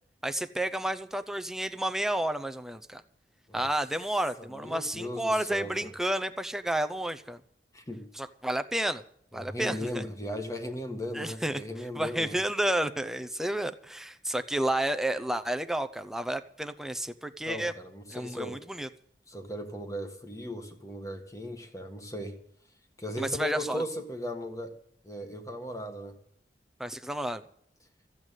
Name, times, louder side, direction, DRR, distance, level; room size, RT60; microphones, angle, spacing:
voice 1, 0.2-3.0 3.5-7.4 8.2-9.0 9.3-10.0 11.1-11.6 11.9-17.7 18.1-18.9 23.2-23.8 26.8-27.4, right 1 dB, ahead, 0.6 m, -31 dB
voice 2, 4.4-5.9 7.7-8.1 9.3-12.4 17.4-18.7 19.3-22.4 23.0-24.8 25.0-26.2, left 1 dB, 20° left, 1.7 m, -37 dB
14.0 x 8.1 x 9.0 m
head